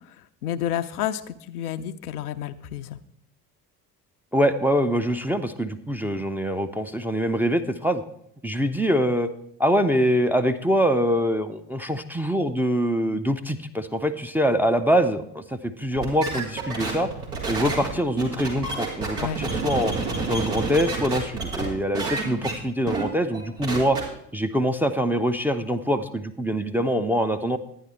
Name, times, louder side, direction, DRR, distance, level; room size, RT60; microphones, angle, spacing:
voice 1, 0.4-3.0 19.2-19.4, left 10 dB, 75° left, 10 dB, 0.6 m, -30 dB
voice 2, 4.3-8.0 8.4-9.3 9.6-17.1 17.5-19.9 20.3-24.0 24.3-27.6, equal, 5° right, 5 dB, 0.5 m, -24 dB
sound 1, 15.9-21.7 21.9-22.5 22.9-23.0 23.3-24.0, right 3 dB, 85° right, 2.3 m, -29 dB
11.0 x 9.8 x 4.2 m, 0.73 s
figure-of-eight pair, 55°, 46 cm